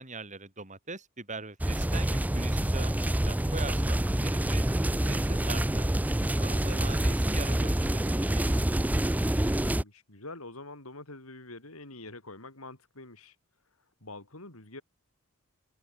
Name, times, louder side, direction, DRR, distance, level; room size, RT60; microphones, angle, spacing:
voice 1, 0.0-4.6 5.0-5.9 6.4-8.6, right 3 dB, 35° right, 7.7 m, -42 dB
sound 1, 1.6-9.8, right 1 dB, 5° right, 0.5 m, -27 dB
voice 2, 6.6-7.0 9.6-13.3 14.0-14.8, left 2 dB, 70° left, 5.2 m, -45 dB
open air
head